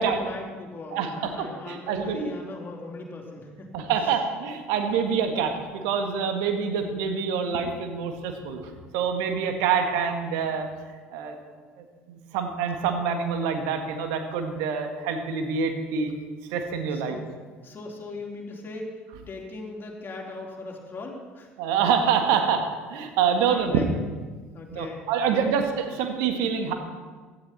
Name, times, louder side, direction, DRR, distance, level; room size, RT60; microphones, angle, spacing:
voice 1, 0.0-3.9 16.9-17.2 17.6-19.0 19.3-21.5 22.3-22.5 23.5-23.8 24.5-25.6, left 3 dB, 30° left, -1 dB, 3.5 m, -39 dB
voice 2, 1.4-2.3 3.7-10.7 11.1-11.4 12.1-16.1 16.5-17.2 21.6-23.8 24.7-26.7, right 6 dB, 65° right, 6 dB, 1.8 m, -26 dB
16.0 x 13.0 x 4.3 m, 1.4 s
figure-of-eight pair, 60°, 7 cm